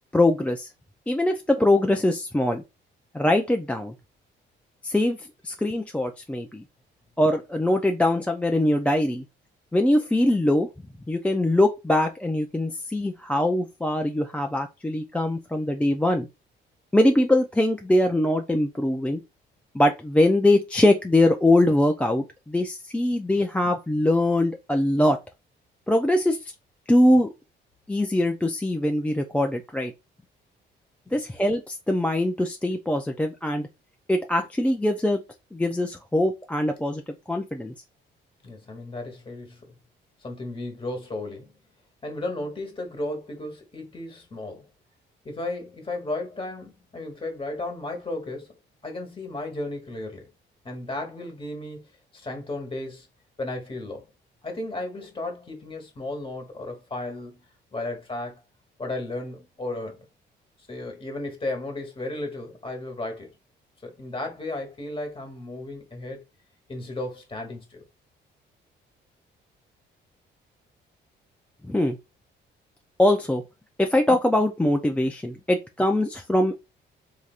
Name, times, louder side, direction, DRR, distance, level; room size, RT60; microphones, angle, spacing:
voice 1, 0.1-0.7 1.1-2.6 3.1-3.9 4.8-6.6 7.2-9.2 9.7-10.7 11.1-16.3 16.9-19.2 19.7-25.2 25.9-26.5 26.9-27.3 27.9-29.9 31.1-33.7 34.1-35.2 35.5-37.0 37.3-37.7 71.6-72.0 73.0-73.4 73.8-76.7, left 1 dB, 5° left, 0.3 m, -22 dB
voice 2, 38.4-39.7 40.2-41.5 42.0-44.7 45.2-48.5 48.8-50.3 50.6-51.8 52.1-53.1 53.4-54.1 54.4-57.4 57.7-58.4 58.8-60.1 60.7-63.3 63.8-66.2 66.7-67.8, left 2 dB, 25° left, 1.3 m, -34 dB
3.3 x 2.6 x 2.4 m
cardioid pair, 90°, 20 cm